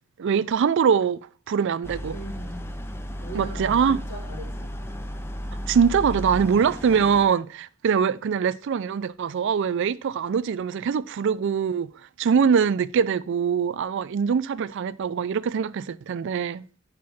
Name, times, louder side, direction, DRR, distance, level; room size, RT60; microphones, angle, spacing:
voice 1, 0.2-1.2 1.5-2.2 3.3-4.0 5.7-11.9 12.2-16.6, right 6 dB, 60° right, 0.4 m, -23 dB
sound 1, 1.8-7.2, equal, 10° left, 0.5 m, -34 dB
voice 2, 2.1-2.7 3.2-4.7, right 2 dB, 60° left, 3.0 m, -39 dB
8.5 x 4.2 x 4.2 m
head